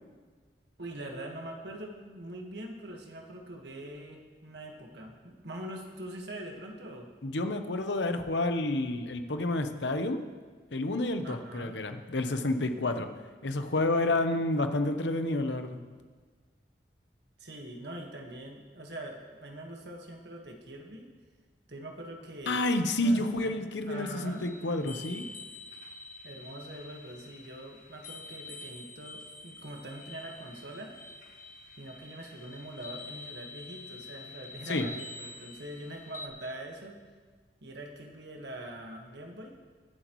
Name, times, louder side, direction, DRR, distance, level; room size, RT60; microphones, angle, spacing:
voice 1, 0.8-7.1 11.2-11.8 17.4-21.1 21.7-22.7 23.0-23.6 23.9-24.5 24.8-24.9 26.2-30.9 31.8-37.0 37.6-39.6, right 1 dB, 70° right, 1 dB, 1.6 m, -43 dB
voice 2, 7.2-10.2 10.7-13.1 13.4-15.8 22.5-25.3 34.7-34.9, left 2 dB, 85° left, 7 dB, 0.9 m, -29 dB
sound 1, 23.9-36.3, left 2 dB, 50° left, 1.5 m, -47 dB
22.5 x 8.1 x 3.1 m, 1.5 s
head